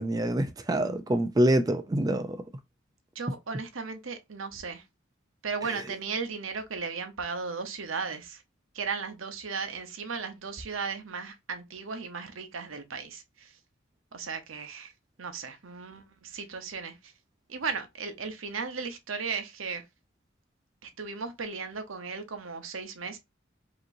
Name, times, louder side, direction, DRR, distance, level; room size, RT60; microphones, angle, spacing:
voice 1, 0.0-2.4 5.7-5.8, right 1 dB, 20° right, 0.4 m, -26 dB
voice 2, 3.1-4.8 5.4-8.4 8.7-13.5 14.1-14.9 15.2-17.1 17.5-19.8 20.8-23.2, right 5 dB, 85° right, 0.9 m, -36 dB
5.1 x 2.9 x 2.6 m
head